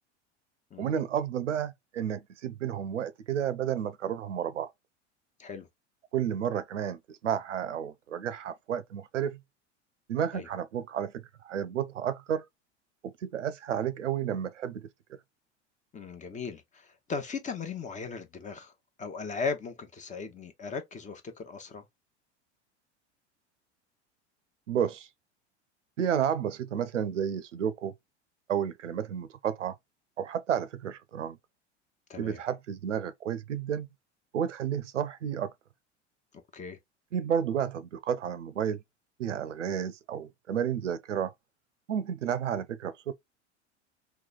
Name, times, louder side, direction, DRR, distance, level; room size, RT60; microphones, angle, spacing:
voice 1, 0.8-4.7 6.1-9.4 10.1-12.4 13.0-14.8 24.7-25.1 26.0-27.9 28.5-29.7 30.2-31.4 32.2-33.9 34.3-35.5 37.1-38.8 39.2-41.3 41.9-43.1, right 9 dB, 90° right, 0.5 m, -31 dB
voice 2, 15.9-18.7 19.0-21.8 32.1-32.4 36.5-36.8, left 5 dB, 20° left, 0.8 m, -37 dB
3.0 x 2.2 x 3.7 m
hypercardioid pair, 85°, 35 cm